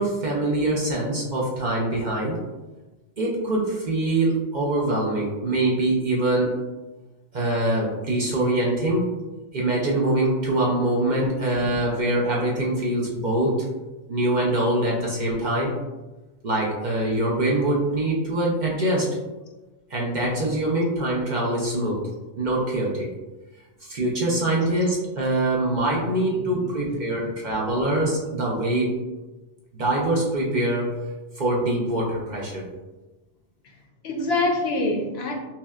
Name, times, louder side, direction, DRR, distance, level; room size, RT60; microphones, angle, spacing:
voice 1, 0.0-2.4 3.2-6.5 7.3-9.1 9.5-13.7 14.1-15.7 16.4-19.1 19.9-22.0 22.4-23.1 23.8-29.0 29.7-31.0 31.3-32.6, right 1 dB, 50° right, -3 dB, 0.7 m, -24 dB
voice 2, 26.2-27.3 34.0-35.3, left 2 dB, 65° left, 2 dB, 0.7 m, -27 dB
5.5 x 2.2 x 2.3 m, 1.1 s
omnidirectional pair, 1.2 m